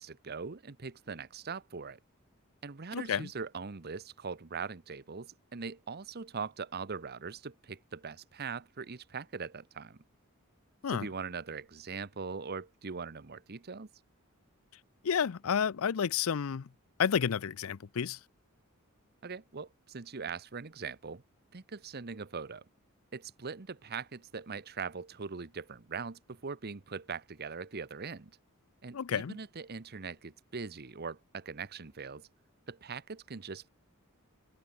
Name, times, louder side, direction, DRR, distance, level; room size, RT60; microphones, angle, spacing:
voice 1, 0.0-2.0 2.6-10.0 10.9-13.9 19.2-21.2 21.5-22.6 23.1-28.3 28.8-32.3 32.7-33.7, right 5 dB, 50° right, 0.9 m, -41 dB
voice 2, 2.9-3.3 10.8-11.1 15.0-16.7 17.0-18.2 28.9-29.4, left 7 dB, 70° left, 0.5 m, -30 dB
head